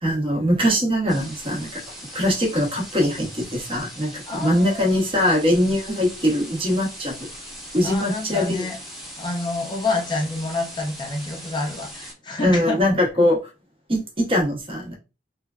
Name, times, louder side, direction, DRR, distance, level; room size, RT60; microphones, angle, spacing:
voice 1, 0.0-1.8 2.1-7.3 7.7-8.7 12.4-13.4 13.9-15.0, equal, 30° right, 1 dB, 0.8 m, -22 dB
sound 1, 1.1-12.1, equal, ahead, 0.9 m, -40 dB
voice 2, 4.3-4.9 7.8-8.8 9.2-12.8, left 2 dB, 25° left, 1 dB, 0.5 m, -28 dB
3.1 x 2.3 x 2.3 m, 0.30 s
head